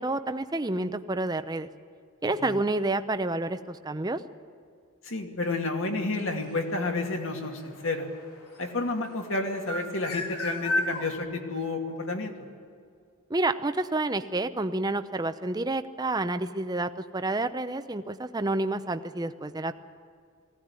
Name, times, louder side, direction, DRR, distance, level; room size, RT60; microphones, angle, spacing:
voice 1, 0.0-1.7 2.2-4.2 13.3-19.7, right 2 dB, 15° right, 10 dB, 0.6 m, -29 dB
voice 2, 2.2-2.5 5.0-8.1 8.6-12.3, left 2 dB, 60° left, 3 dB, 2.3 m, -30 dB
sound 1, 6.2-9.1 9.5-11.1, left 1 dB, 80° left, 3.4 m, -33 dB
19.5 x 16.5 x 9.7 m, 2.2 s
head